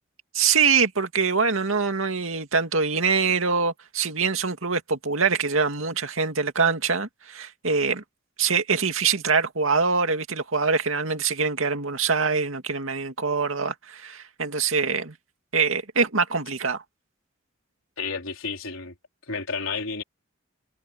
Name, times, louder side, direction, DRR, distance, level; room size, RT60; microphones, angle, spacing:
voice 1, 0.3-8.0 8.4-15.1 15.5-16.8, right 5 dB, 85° right, 2.3 m, -24 dB
voice 2, 18.0-18.9 19.3-20.0, left 4 dB, 90° left, 3.9 m, -31 dB
head